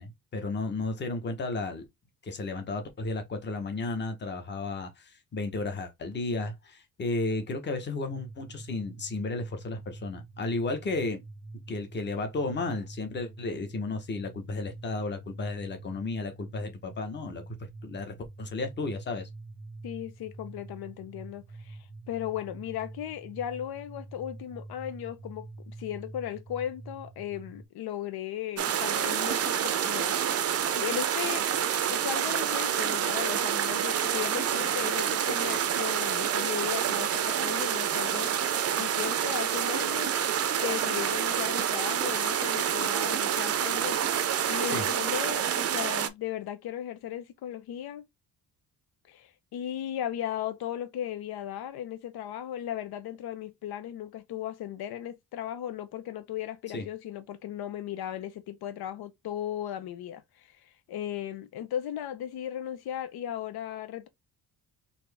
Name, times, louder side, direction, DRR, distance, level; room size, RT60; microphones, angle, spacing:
voice 1, 0.0-1.9 2.2-11.2 11.7-17.4 17.8-19.3 44.7-44.9 56.7-56.9, left 3 dB, 30° left, 0.9 m, -33 dB
sound 1, 8.1-27.6, right 2 dB, ahead, 0.7 m, -46 dB
voice 2, 19.8-21.8 22.1-30.2 30.7-31.5 31.9-38.3 38.7-40.1 40.6-48.0 49.1-64.1, left 11 dB, 90° left, 0.7 m, -36 dB
sound 2, 28.6-46.1, right 9 dB, 40° right, 0.5 m, -28 dB
4.2 x 2.8 x 3.3 m
wide cardioid pair, 180°, 36 cm